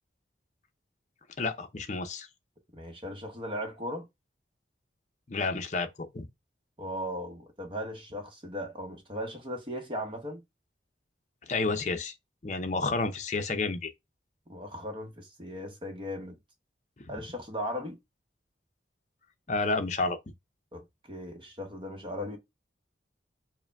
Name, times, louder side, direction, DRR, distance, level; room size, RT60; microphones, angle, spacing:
voice 1, 1.4-2.3 5.3-6.3 11.4-12.1 12.4-13.9 19.5-20.3, left 3 dB, 40° left, 0.6 m, -30 dB
voice 2, 2.7-4.1 6.8-10.4 14.5-16.4 17.1-18.0 20.7-22.4, equal, 30° right, 0.9 m, -37 dB
4.8 x 2.2 x 3.4 m
head